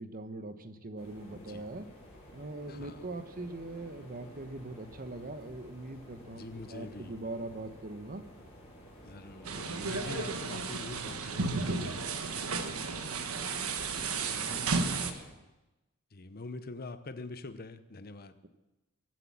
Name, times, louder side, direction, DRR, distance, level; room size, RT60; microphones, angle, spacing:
voice 1, 0.0-1.9 2.3-8.2 14.3-15.2, right 2 dB, 40° right, 10 dB, 1.1 m, -42 dB
sound 1, 1.0-15.3, equal, 30° left, 6.4 m, -52 dB
voice 2, 1.3-1.6 2.7-3.1 6.3-7.1 9.0-13.7 14.4-14.7 16.1-18.4, left 3 dB, 45° left, 12 dB, 0.9 m, -45 dB
sound 2, 9.5-15.1, right 4 dB, 75° right, 1.3 m, -33 dB
23.0 x 7.8 x 7.5 m, 1.0 s
head